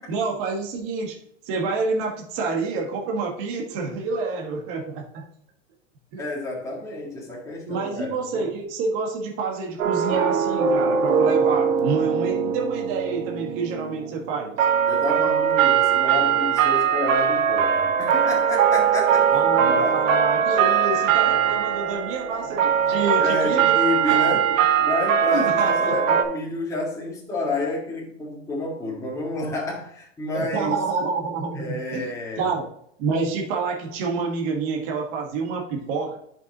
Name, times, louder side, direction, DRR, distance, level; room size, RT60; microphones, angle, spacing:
voice 1, 0.1-1.2 1.4-5.2 6.1-6.2 7.6-14.6 19.3-23.8 24.1-24.4 25.3-26.0 30.3-32.1 32.3-32.7 33.0-36.2, right 4 dB, 35° right, 0 dB, 1.6 m, -28 dB
voice 2, 6.2-8.5 14.9-19.3 19.6-20.0 22.8-24.5 24.8-30.8 31.6-32.5, left 2 dB, 10° left, -4 dB, 1.8 m, -29 dB
sound 1, 9.8-26.2, right 7 dB, 90° right, 1.2 m, -21 dB
10.5 x 5.7 x 3.0 m, 0.69 s
hypercardioid pair, 150°, 39 cm